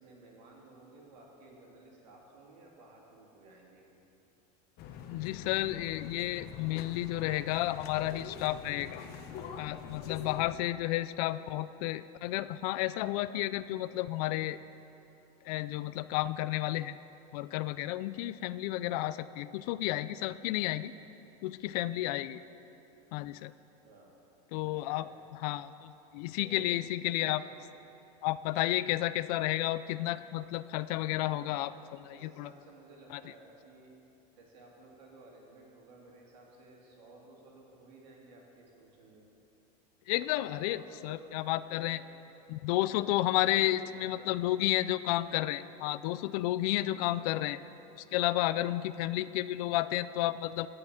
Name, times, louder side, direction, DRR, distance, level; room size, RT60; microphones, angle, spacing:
voice 1, 0.0-3.8 23.8-24.1 24.6-25.2 26.3-26.9 27.2-27.5 28.6-28.8 31.1-33.9 34.4-39.3 40.1-41.5 41.8-42.0 42.7-44.6 46.9-47.3 48.3-48.6, right 2 dB, 85° right, -2 dB, 3.0 m, -55 dB
sound 1, 4.8-10.5, left 7 dB, 50° left, 1.0 m, -45 dB
voice 2, 5.1-9.0 9.6-14.6 15.4-17.0 17.3-20.9 21.4-22.4 23.1-23.5 24.5-27.4 28.2-31.7 32.1-32.5 33.1-33.2 40.1-42.0 42.5-47.6 47.9-50.7, left 15 dB, 70° left, 15 dB, 0.5 m, -32 dB
17.0 x 5.9 x 6.6 m, 2.9 s
supercardioid pair, 130°, 21 cm